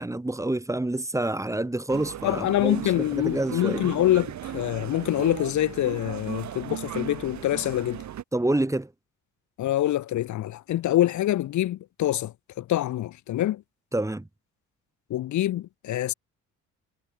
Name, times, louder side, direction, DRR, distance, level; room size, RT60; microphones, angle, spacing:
voice 1, 0.0-3.9 8.3-8.9 13.9-14.3, right 1 dB, 10° right, 1.7 m, -28 dB
sound 1, 1.9-8.2, right 11 dB, 65° right, 3.3 m, -37 dB
voice 2, 2.2-8.0 9.6-13.6 15.1-16.1, left 13 dB, 70° left, 1.1 m, -25 dB
cardioid pair, 90°, 30 cm